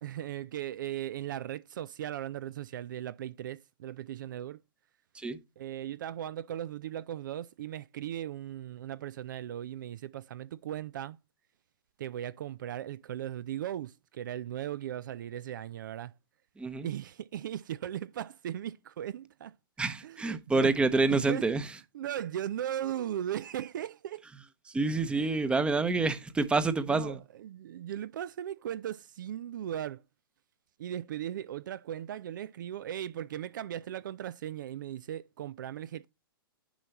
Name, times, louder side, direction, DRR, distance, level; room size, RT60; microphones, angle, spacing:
voice 1, 0.0-4.6 5.6-11.2 12.0-16.1 16.8-19.5 20.0-20.7 21.1-21.4 21.9-24.2 26.9-30.0 30.8-36.1, right 11 dB, 55° right, 0.4 m, -37 dB
voice 2, 16.6-16.9 19.8-21.8 24.7-27.2, right 3 dB, 10° right, 0.8 m, -28 dB
10.0 x 5.4 x 3.0 m
figure-of-eight pair, 110°, 12 cm